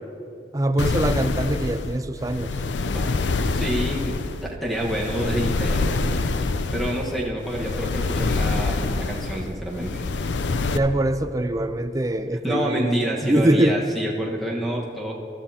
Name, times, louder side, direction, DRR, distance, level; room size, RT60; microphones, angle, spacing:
voice 1, 0.5-2.5 10.7-13.8, right 1 dB, 20° right, 10 dB, 0.5 m, -23 dB
sound 1, 0.8-10.8, left 3 dB, 85° left, 0.5 m, -26 dB
voice 2, 2.8-6.2 6.7-10.0 12.4-15.1, equal, ahead, -3 dB, 1.4 m, -28 dB
24.5 x 13.0 x 2.9 m, 2.7 s
head